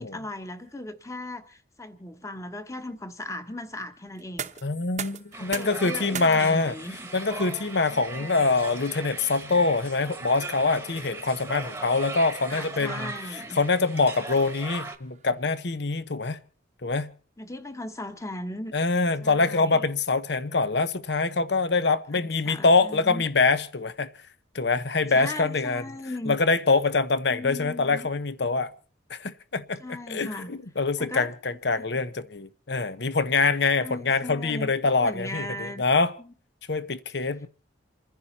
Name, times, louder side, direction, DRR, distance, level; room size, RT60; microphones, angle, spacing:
voice 1, 0.0-4.5 5.3-7.1 7.9-8.4 12.5-13.6 17.4-18.7 19.2-19.8 22.1-23.2 25.1-26.4 27.3-28.1 29.8-30.5 31.0-31.3 31.8-32.0 33.7-35.8 36.2-36.3, left 1 dB, 15° left, 1.3 m, -38 dB
sound 1, 4.1-15.9, right 7 dB, 40° right, 0.9 m, -44 dB
voice 2, 4.6-6.8 7.1-16.4 16.8-17.1 18.7-24.1 24.5-25.8 26.3-28.7 29.1-29.8 30.1-36.1 36.7-37.5, left 3 dB, 60° left, 0.9 m, -24 dB
sound 2, 5.3-15.0, right 3 dB, 10° right, 1.2 m, -38 dB
28.5 x 10.5 x 4.2 m
head